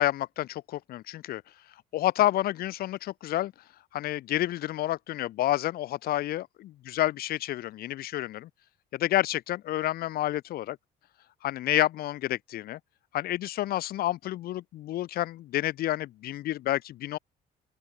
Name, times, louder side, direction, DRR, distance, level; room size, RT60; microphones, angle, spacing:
voice 1, 0.0-1.4 1.9-3.5 3.9-8.5 8.9-10.8 11.4-12.8 13.1-17.2, left 14 dB, 65° left, 0.7 m, -29 dB
open air
cardioid pair, 110°, 17 cm